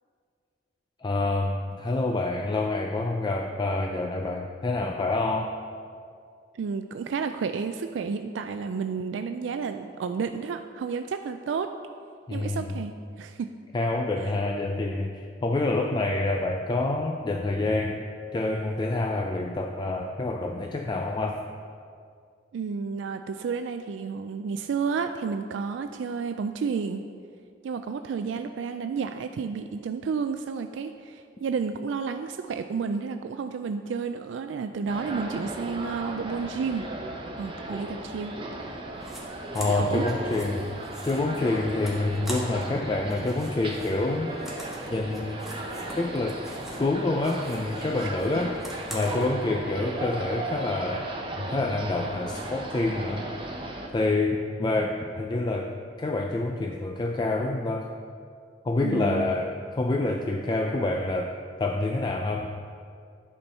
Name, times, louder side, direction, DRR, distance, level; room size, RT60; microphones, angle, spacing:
voice 1, 1.0-5.5 12.3-12.7 13.7-18.0 18.3-21.4 39.5-40.6 41.0-44.4 44.9-45.4 46.0-46.4 46.8-48.6 48.9-51.1 51.4-53.6 53.9-57.9 58.6-61.3 61.6-62.5, left 2 dB, 25° left, 3 dB, 0.4 m, -27 dB
voice 2, 6.5-11.7 12.3-13.5 22.5-27.0 27.6-36.8 37.4-38.3 39.5-40.1 58.8-59.3, right 5 dB, 75° right, 8 dB, 0.3 m, -31 dB
sound 1, 34.9-53.9, right 1 dB, 30° right, 0.9 m, -36 dB
sound 2, 39.0-39.2 39.5-42.8 43.0-46.9 47.2-49.3, right 1 dB, ahead, 1.3 m, -43 dB
11.0 x 4.4 x 5.4 m, 2.3 s
head